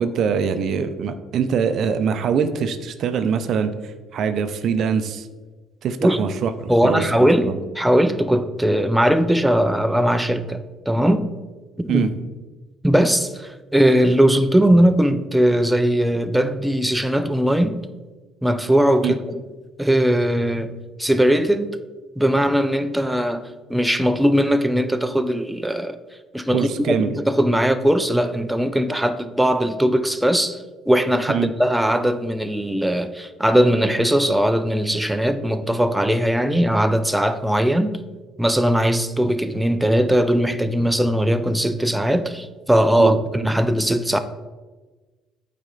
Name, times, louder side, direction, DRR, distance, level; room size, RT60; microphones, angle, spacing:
voice 1, 0.0-3.7 4.1-5.3 5.8-7.6 11.9-12.1 19.0-19.1 26.5-27.2 31.3-31.5 43.0-43.5, right 6 dB, 55° right, 0.5 m, -23 dB
voice 2, 6.7-11.4 11.8-12.1 12.8-17.9 18.4-19.4 19.8-21.8 22.2-26.0 26.3-37.9 38.4-44.2, equal, 5° right, 0.5 m, -19 dB
8.8 x 4.2 x 3.9 m
hypercardioid pair, 55°, 0 cm